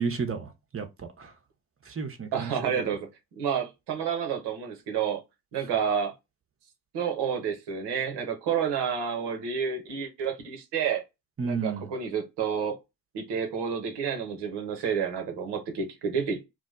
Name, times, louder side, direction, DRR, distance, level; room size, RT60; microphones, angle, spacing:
voice 1, 0.0-1.3 1.9-2.7 11.4-11.9, right 5 dB, 30° right, 0.9 m, -32 dB
voice 2, 2.3-3.1 3.3-5.2 5.5-6.1 6.9-11.0 11.4-12.8 13.1-16.5, right 7 dB, 65° right, 1.0 m, -29 dB
2.5 x 2.1 x 2.4 m
hypercardioid pair, 40°, 44 cm